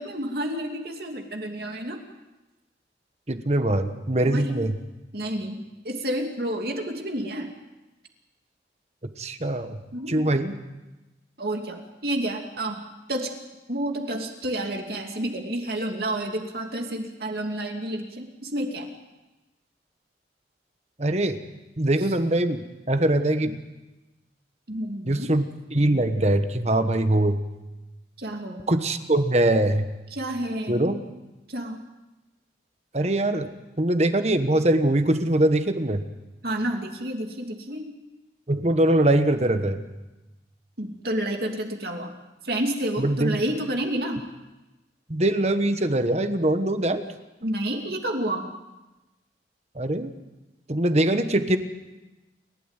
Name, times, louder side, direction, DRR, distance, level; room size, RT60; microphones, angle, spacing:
voice 1, 0.0-2.0 4.2-4.6 5.1-5.6 5.8-7.5 9.9-10.3 11.4-12.8 13.1-13.3 13.7-18.9 24.7-25.3 28.2-28.6 30.1-31.0 31.5-31.8 36.4-37.9 40.8-42.1 42.4-44.2 47.4-48.5, right 1 dB, 55° right, 3 dB, 2.7 m, -30 dB
voice 2, 3.3-4.8 9.2-9.8 10.1-10.6 21.0-21.4 21.8-23.6 25.1-27.4 28.7-29.9 30.7-31.0 32.9-33.5 33.8-36.0 38.5-39.8 43.0-43.4 45.1-47.1 49.7-50.1 50.7-51.6, right 1 dB, 35° right, 9 dB, 1.3 m, -22 dB
29.0 x 12.5 x 9.1 m, 1.1 s
head